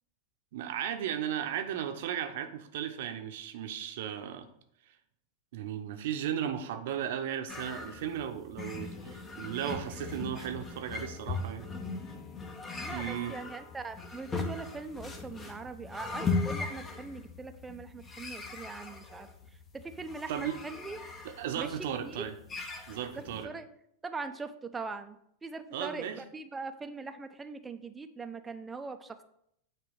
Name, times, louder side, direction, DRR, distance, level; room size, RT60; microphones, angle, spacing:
voice 1, 0.5-4.5 5.5-11.7 12.9-13.4 20.3-20.6 21.2-22.3 22.9-23.5 25.7-26.2, right 9 dB, 55° right, 7 dB, 0.9 m, -35 dB
sound 1, 7.5-23.4, left 4 dB, 20° left, 1.1 m, -39 dB
voice 2, 12.8-19.3 19.7-21.0 21.5-22.2 23.2-23.7 24.0-29.2, right 4 dB, 15° right, 8 dB, 0.7 m, -41 dB
8.9 x 3.4 x 6.4 m, 0.73 s
figure-of-eight pair, 90°, 0 cm